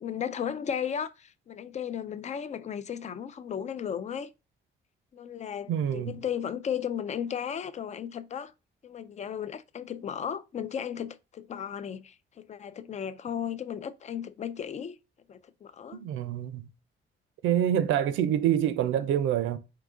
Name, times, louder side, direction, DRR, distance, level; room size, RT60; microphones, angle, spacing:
voice 1, 0.0-4.3 5.1-8.5 8.8-15.0 15.3-16.0, left 8 dB, 35° left, 0.4 m, -35 dB
voice 2, 5.7-6.2 15.9-16.7 17.4-19.6, right 10 dB, 85° right, 0.5 m, -26 dB
3.8 x 2.8 x 3.6 m
cardioid pair, 90°, 20 cm